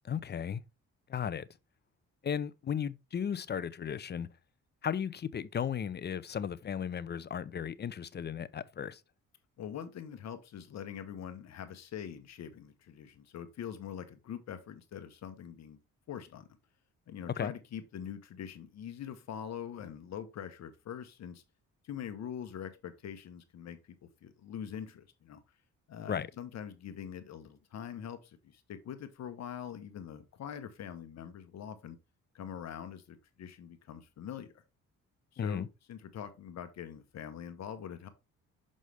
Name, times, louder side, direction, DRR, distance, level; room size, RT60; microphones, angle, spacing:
voice 1, 0.0-0.6 1.1-1.5 2.2-4.3 4.8-9.0 17.4-17.5 26.1-26.3 35.4-35.7, left 8 dB, 35° left, 0.5 m, -35 dB
voice 2, 9.6-15.8 16.1-16.5 17.1-21.4 21.8-25.4 25.9-32.0 32.3-34.5 35.3-38.1, left 9 dB, 60° left, 1.0 m, -43 dB
6.3 x 5.4 x 3.4 m
cardioid pair, 90°, 30 cm